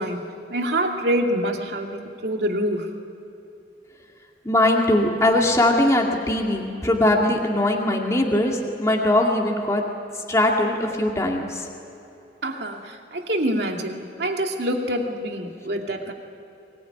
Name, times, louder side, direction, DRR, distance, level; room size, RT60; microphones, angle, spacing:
voice 1, 0.0-2.9 12.4-16.1, right 1 dB, 65° right, 2 dB, 2.5 m, -26 dB
voice 2, 4.4-11.7, left 1 dB, 15° left, 0 dB, 2.3 m, -21 dB
23.5 x 20.5 x 9.9 m, 2.9 s
head